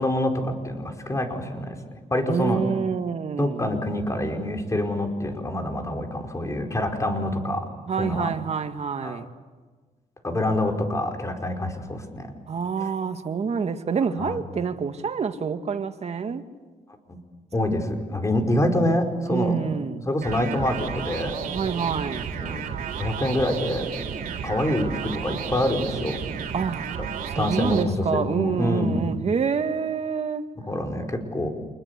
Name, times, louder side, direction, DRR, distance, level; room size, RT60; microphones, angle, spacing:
voice 1, 0.0-1.7 2.1-2.6 3.4-7.7 8.0-8.3 9.0-9.2 10.2-12.3 14.2-14.4 17.1-17.2 17.5-19.5 20.1-21.3 22.3-22.6 23.0-23.9 24.4-26.2 27.0-27.1 27.3-29.1 30.7-31.5, left 1 dB, 20° left, 4.9 m, -26 dB
voice 2, 2.3-3.6 7.9-9.3 12.5-16.4 19.3-20.1 21.5-22.3 26.5-26.8 27.2-30.4, right 6 dB, 50° right, 1.9 m, -27 dB
sound 1, 20.2-27.8, right 7 dB, 80° right, 3.5 m, -32 dB
28.0 x 21.0 x 8.3 m
cardioid pair, 80°, 14 cm